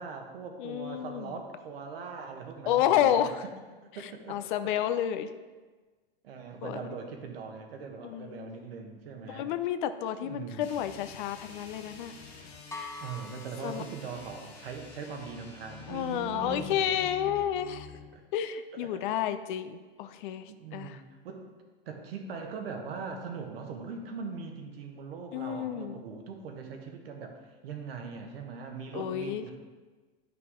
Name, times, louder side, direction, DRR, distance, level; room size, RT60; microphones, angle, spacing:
voice 1, 0.0-3.3 3.9-4.7 6.2-9.5 10.2-10.7 13.0-17.0 18.1-18.2 18.8-19.1 20.6-21.4 21.9-29.6, right 5 dB, 70° right, 3 dB, 1.4 m, -41 dB
voice 2, 0.6-1.4 2.7-3.4 4.3-5.3 6.6-6.9 8.0-8.6 9.3-12.1 13.6-13.8 15.9-17.9 18.3-21.0 25.3-26.0 28.9-29.4, left 10 dB, 55° left, 11 dB, 0.6 m, -30 dB
sound 1, 10.6-18.1, left 6 dB, 80° left, 1.4 m, -48 dB
sound 2, 12.7-14.5, left 3 dB, 10° left, 0.9 m, -44 dB
9.5 x 5.7 x 3.7 m, 1.3 s
hypercardioid pair, 120°, 31 cm